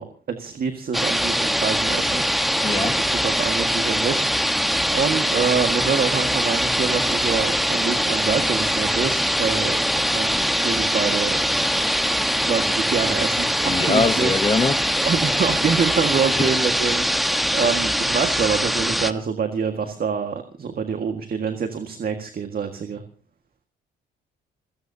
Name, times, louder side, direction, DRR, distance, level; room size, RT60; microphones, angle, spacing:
voice 1, 0.0-2.2 2.7-4.6 4.9-11.8 12.5-14.4 15.0-23.0, right 6 dB, 50° right, 1.8 m, -26 dB
sound 1, 0.9-19.1, equal, ahead, 1.3 m, -22 dB
voice 2, 2.6-3.0 13.6-14.8, left 4 dB, 25° left, 1.4 m, -22 dB
29.0 x 16.5 x 2.8 m
cardioid pair, 90°, 20 cm